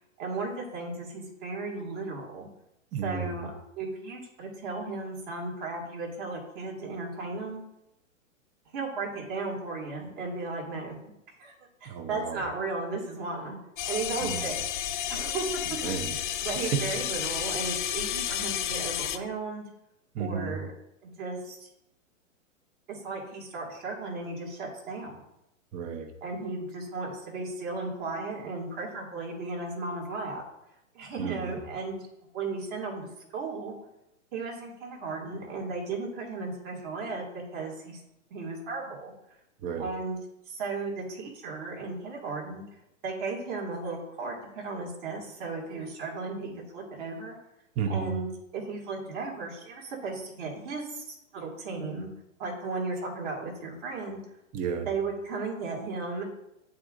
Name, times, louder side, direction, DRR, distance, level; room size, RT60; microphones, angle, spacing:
voice 1, 0.2-2.5 3.0-3.5 3.8-7.6 8.7-11.1 11.4-11.5 11.8-13.6 13.9-14.6 15.1-15.8 16.4-19.6 20.2-20.7 21.0-21.7 22.9-25.1 26.2-30.4 30.9-32.0 32.3-33.8 34.3-38.0 38.3-39.1 39.8-40.2 40.5-42.6 43.0-47.4 47.9-52.1 52.4-54.2 54.9-56.3, right 3 dB, 40° right, -2 dB, 2.3 m, -35 dB
voice 2, 2.9-3.5 11.9-12.4 14.2-14.6 15.8-16.1 16.5-16.8 20.1-20.6 25.7-26.1 31.2-31.6 39.6-39.9 47.8-48.1 54.5-54.9, right 7 dB, 20° right, 7 dB, 0.6 m, -32 dB
sound 1, 13.8-19.2, left 10 dB, 40° left, 0.4 m, -31 dB
11.0 x 3.8 x 2.6 m, 0.86 s
hypercardioid pair, 120°, 40 cm